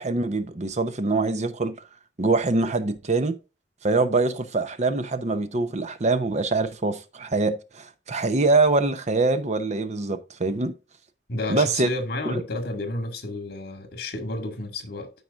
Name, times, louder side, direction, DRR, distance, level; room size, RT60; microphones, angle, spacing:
voice 1, 0.0-1.8 2.2-3.3 3.8-10.7 11.5-11.9 12.3-12.4, right 3 dB, 40° right, 0.8 m, -24 dB
voice 2, 11.3-15.1, left 2 dB, 60° left, 1.9 m, -31 dB
13.5 x 4.8 x 2.5 m
head